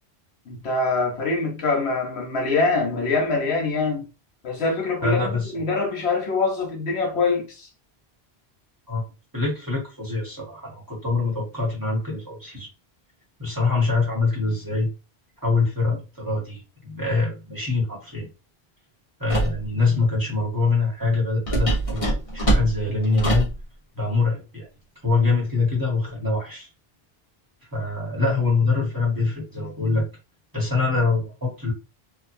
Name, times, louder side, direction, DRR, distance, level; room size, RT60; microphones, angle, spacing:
voice 1, 0.5-4.1 4.4-7.7, left 3 dB, 85° left, 1.1 m, -24 dB
voice 2, 5.0-5.5 8.9-9.0 9.3-12.7 13.4-14.9 15.4-18.3 19.2-23.5 23.9-24.7 25.0-26.7 27.7-30.1 30.5-31.7, left 3 dB, 20° right, 1.3 m, -24 dB
sound 1, 19.3-19.6 21.5-23.6, right 1 dB, 35° left, 1.2 m, -23 dB
2.9 x 2.4 x 2.6 m
omnidirectional pair, 1.1 m